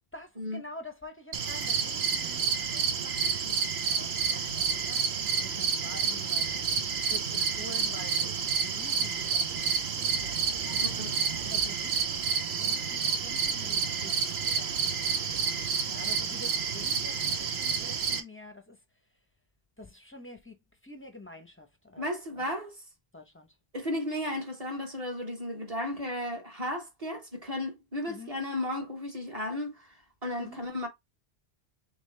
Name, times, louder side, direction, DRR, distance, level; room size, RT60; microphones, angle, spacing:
voice 1, 0.1-5.0 5.4-6.7 7.0-10.4 10.6-11.0 11.4-12.2 12.5-15.4 15.9-18.8 19.8-20.6 20.8-22.5 23.1-23.5 28.1-28.3 30.4-30.6, left 2 dB, 15° left, 0.5 m, -48 dB
sound 1, 1.3-18.2, right 6 dB, 75° right, 1.0 m, -29 dB
sound 2, 7.8-7.9 9.9-11.7 13.6-13.8, right 3 dB, 50° right, 1.0 m, -46 dB
voice 2, 10.8-11.2 22.0-22.7 23.7-29.7 30.2-30.9, left 1 dB, 35° right, 1.2 m, -34 dB
3.8 x 3.3 x 3.1 m
omnidirectional pair, 1.1 m